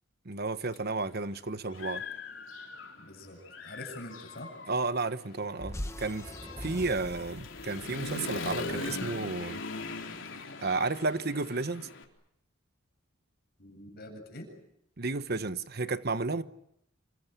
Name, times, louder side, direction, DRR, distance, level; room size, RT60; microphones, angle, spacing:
voice 1, 0.2-2.0 4.7-6.3 6.6-9.6 10.6-11.9 15.0-16.4, right 3 dB, 50° right, 1.2 m, -32 dB
Human voice / Motorcycle, 0.7-0.8 1.3-3.1 3.4-12.0, left 3 dB, 70° left, 4.0 m, -40 dB
voice 2, 3.0-4.5 13.6-14.5, left 1 dB, 50° left, 7.7 m, -45 dB
sound 1, 5.6-10.0, left 1 dB, 15° left, 1.2 m, -43 dB
28.0 x 24.0 x 8.4 m
head